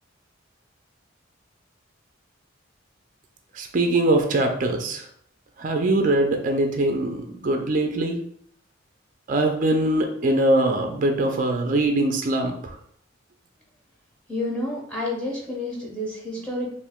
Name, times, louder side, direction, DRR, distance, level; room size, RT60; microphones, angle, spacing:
voice 1, 3.5-5.0 5.6-8.2 9.3-12.7, right 2 dB, 40° right, 4 dB, 0.4 m, -22 dB
voice 2, 14.3-16.7, left 1 dB, 5° left, -4 dB, 0.7 m, -29 dB
2.9 x 2.5 x 3.5 m, 0.64 s
head